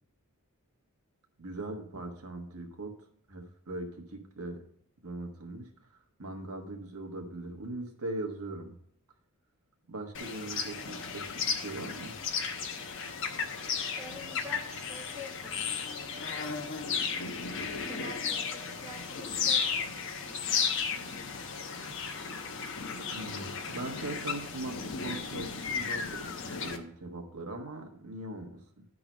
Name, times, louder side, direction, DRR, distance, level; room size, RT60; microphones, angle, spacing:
voice 1, 1.4-2.9 3.3-4.6 5.0-8.8 9.9-12.2 23.1-28.9, right 2 dB, 80° right, 3 dB, 1.4 m, -40 dB
sound 1, 10.1-26.8, left 6 dB, 55° left, 0.9 m, -34 dB
voice 2, 14.0-16.7 17.9-19.9 20.2-20.7, left 1 dB, 10° right, -2 dB, 1.3 m, -48 dB
10.5 x 3.9 x 6.0 m, 0.66 s
head